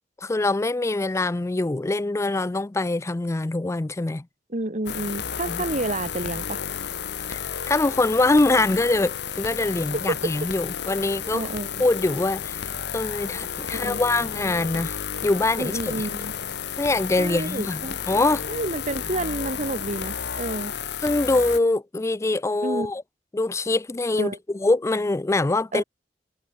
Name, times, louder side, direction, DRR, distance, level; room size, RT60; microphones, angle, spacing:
voice 1, 0.2-4.3 5.5-5.6 7.3-7.4 7.7-11.5 11.8-12.7 12.9-15.9 16.8-18.4 21.0-23.0 23.3-25.8, left 2 dB, 15° left, 0.4 m, -24 dB
voice 2, 4.5-6.6 9.9-10.3 11.3-11.8 13.7-14.0 15.6-16.3 17.2-18.0 18.5-20.7 22.6-22.9 24.1-24.4 25.7-25.8, right 2 dB, 40° right, 1.9 m, -29 dB
sound 1, 4.9-21.6, left 8 dB, 65° left, 1.0 m, -32 dB
head